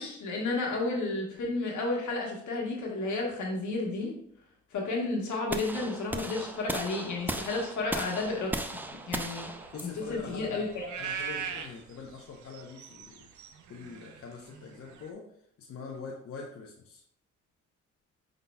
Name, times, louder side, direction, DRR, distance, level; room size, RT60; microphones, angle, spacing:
voice 1, 0.0-4.1 4.7-8.8 9.1-9.5 9.8-10.9, left 3 dB, 70° left, -1 dB, 1.4 m, -32 dB
sound 1, 5.5-11.6, right 1 dB, 5° right, 0.4 m, -37 dB
sound 2, 8.3-15.1, right 7 dB, 70° right, 0.6 m, -42 dB
voice 2, 9.7-10.7 11.0-13.2 13.7-15.2 15.6-17.0, left 4 dB, 50° left, -2 dB, 0.8 m, -43 dB
5.3 x 3.9 x 2.3 m, 0.71 s
cardioid pair, 75°, 30 cm